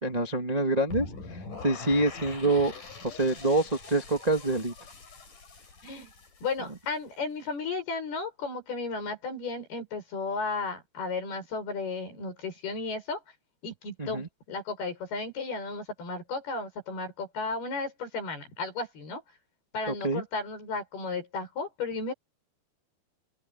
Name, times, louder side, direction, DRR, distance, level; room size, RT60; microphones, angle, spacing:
voice 1, 0.0-1.0 1.3-2.7 3.0-4.7 14.0-14.3 19.9-20.2, right 2 dB, 40° right, 0.5 m, -26 dB
sound 1, 0.9-6.9, left 3 dB, 50° left, 7.7 m, -43 dB
voice 2, 6.4-13.2 13.6-19.2 19.7-22.1, left 4 dB, 65° left, 8.7 m, -34 dB
open air
omnidirectional pair, 4.9 m